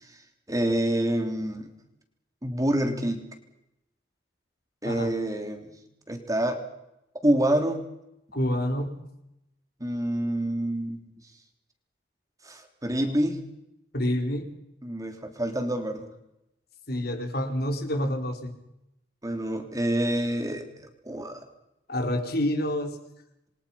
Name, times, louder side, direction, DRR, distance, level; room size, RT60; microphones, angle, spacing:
voice 1, 0.5-1.7 2.4-3.2 4.8-5.8 6.1-6.6 7.2-7.8 9.8-11.0 12.4-13.4 14.8-16.1 19.2-20.7 21.1-21.4, right 1 dB, 20° right, 5 dB, 3.5 m, -27 dB
voice 2, 8.3-9.0 13.9-14.5 16.9-18.5 21.9-23.0, left 1 dB, 60° left, 5 dB, 4.3 m, -28 dB
28.5 x 23.5 x 5.8 m, 0.84 s
head